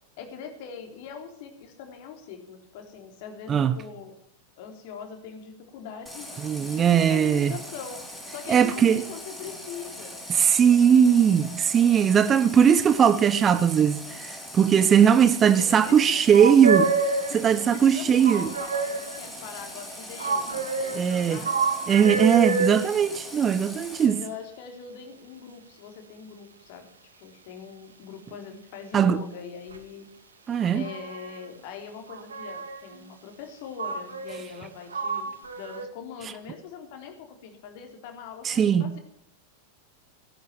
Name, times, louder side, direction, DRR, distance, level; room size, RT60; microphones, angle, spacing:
voice 1, 0.2-4.1 4.6-6.3 6.6-8.0 8.3-10.2 15.5-16.4 17.3-21.0 21.3-21.5 24.0-26.9 27.1-30.1 30.7-35.3 35.6-39.0, left 7 dB, 50° left, 3.6 m, -42 dB
Water tap faucet, 6.1-24.1, left 1 dB, ahead, 5.8 m, -41 dB
voice 2, 6.4-7.5 8.5-9.1 10.3-16.9 17.3-18.5 20.9-21.4 21.9-24.2 28.9-29.2 30.5-30.8 38.4-38.9, right 8 dB, 25° right, 0.9 m, -19 dB
sound 1, 16.3-17.5 18.2-19.3 20.2-22.8 29.7-29.8 30.5-31.4 32.1-32.9 33.8-34.6 34.9-35.8, right 4 dB, 70° right, 2.2 m, -28 dB
17.5 x 11.0 x 6.0 m
figure-of-eight pair, 90°, 0 cm